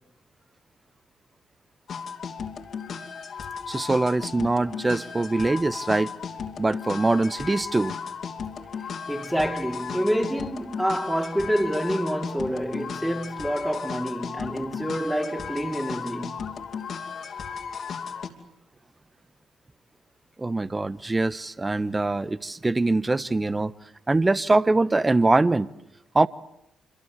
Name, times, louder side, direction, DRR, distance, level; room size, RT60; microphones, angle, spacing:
sound 1, 1.9-18.3, left 6 dB, 60° left, 3.0 m, -35 dB
voice 1, 3.7-6.1 6.6-8.0 20.4-23.7 24.1-25.7 26.1-26.3, right 2 dB, 25° right, 1.1 m, -23 dB
voice 2, 9.1-16.4, equal, 5° right, 2.7 m, -27 dB
26.5 x 25.0 x 8.1 m
hypercardioid pair, 50°, 0 cm